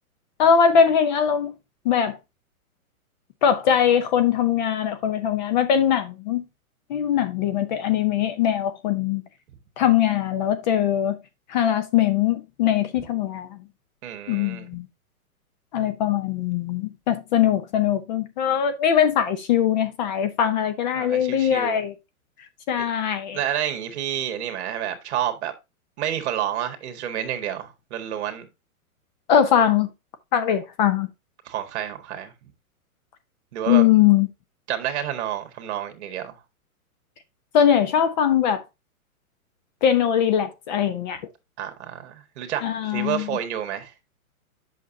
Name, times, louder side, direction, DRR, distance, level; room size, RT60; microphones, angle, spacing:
voice 1, 0.4-1.5 1.8-2.2 3.4-6.4 6.9-9.2 9.8-11.2 11.5-13.6 14.3-14.9 15.7-21.9 22.7-23.4 29.3-29.9 30.3-31.1 33.7-34.3 37.5-38.6 39.8-41.2 42.6-43.3, left 9 dB, 30° left, 0.7 m, -21 dB
voice 2, 14.0-14.7 20.9-21.8 22.8-22.9 23.3-25.5 26.0-28.5 31.4-32.3 33.5-33.8 34.7-36.3 41.6-43.9, right 10 dB, 50° right, 1.7 m, -29 dB
8.3 x 6.2 x 2.7 m
hypercardioid pair, 145°, 43 cm